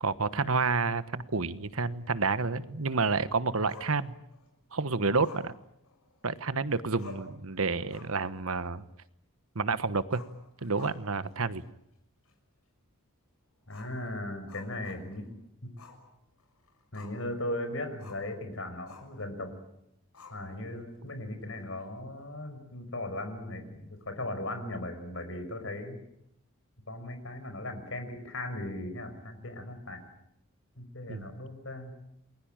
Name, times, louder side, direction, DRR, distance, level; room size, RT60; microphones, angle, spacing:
voice 1, 0.0-4.1 4.7-5.5 6.2-8.8 9.5-10.2 10.6-11.6 31.1-31.3, right 4 dB, 75° right, 14 dB, 1.2 m, -29 dB
Growling, 3.7-4.5 5.2-6.5 6.7-6.8 7.0-7.4 7.8-8.3 8.6-8.7 10.0-11.3 11.6-11.7 12.3-12.4 13.7-15.3 15.8-16.0 16.4-17.3 18.0-18.3 18.9-19.2 20.1-20.8, left 3 dB, 85° left, 6.7 m, -51 dB
voice 2, 13.7-15.3 15.6-15.7 16.9-19.6 20.3-26.0 26.9-30.0 30.8-31.9, left 1 dB, 60° left, 8 dB, 5.7 m, -38 dB
29.0 x 21.5 x 9.0 m, 0.81 s
head